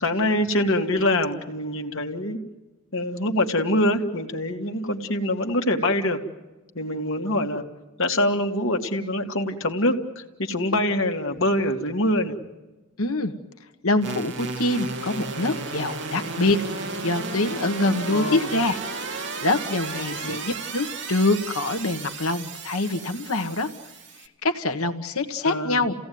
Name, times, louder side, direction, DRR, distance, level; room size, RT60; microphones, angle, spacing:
voice 1, 0.0-2.4 2.9-6.2 6.8-7.7 8.0-12.4 18.1-18.4 19.9-20.4 25.5-25.8, left 1 dB, 60° left, 4 dB, 2.2 m, -24 dB
voice 2, 13.0-13.3 13.8-16.6 17.0-23.7 24.2-25.9, left 2 dB, 75° left, 8 dB, 1.5 m, -25 dB
sound 1, 14.0-24.3, right 3 dB, 55° right, 1.9 m, -34 dB
30.0 x 17.5 x 9.5 m, 1.1 s
head